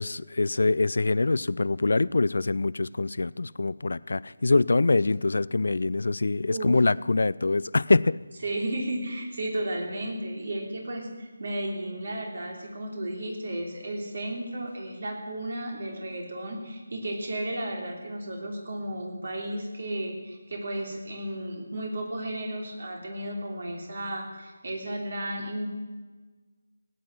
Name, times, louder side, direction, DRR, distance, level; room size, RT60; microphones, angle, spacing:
voice 1, 0.0-8.2, left 3 dB, 55° left, 20 dB, 0.4 m, -24 dB
voice 2, 6.5-6.8 8.4-25.7, right 1 dB, 50° right, 1 dB, 3.3 m, -33 dB
16.5 x 9.4 x 7.7 m, 1.3 s
figure-of-eight pair, 155°, 0 cm